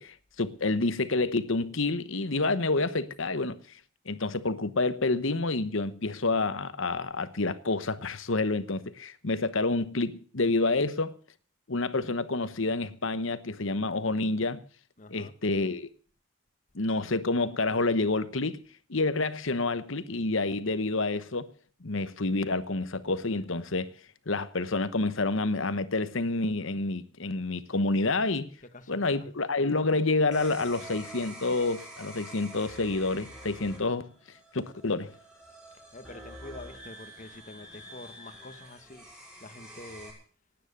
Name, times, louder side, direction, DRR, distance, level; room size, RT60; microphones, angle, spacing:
voice 1, 0.0-3.6 4.1-11.2 11.7-14.6 15.1-15.9 16.7-18.6 18.9-21.5 21.8-23.9 24.3-28.5 28.9-34.1 34.5-35.1, left 3 dB, 65° left, 1.1 m, -28 dB
voice 2, 15.0-15.3 28.7-29.3 35.9-39.1 39.4-40.2, left 2 dB, 35° left, 1.4 m, -46 dB
sound 1, 30.3-40.1, right 1 dB, 5° right, 6.0 m, -47 dB
18.0 x 9.3 x 6.8 m
head